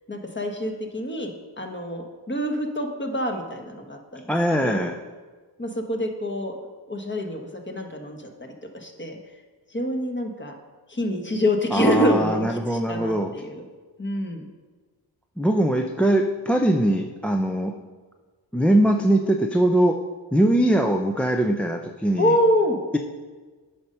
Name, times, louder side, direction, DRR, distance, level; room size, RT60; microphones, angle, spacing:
voice 1, 0.1-1.3 1.6-4.3 4.6-4.9 5.6-6.5 6.9-9.2 9.7-10.5 10.9-13.6 14.0-14.4 22.2-22.8, equal, 25° left, 4 dB, 1.4 m, -26 dB
voice 2, 4.3-5.0 11.7-13.3 15.4-17.7 18.5-20.0 20.3-22.3, right 1 dB, 5° left, 3 dB, 0.5 m, -21 dB
9.2 x 5.3 x 5.5 m, 1.4 s
cardioid pair, 65°, 43 cm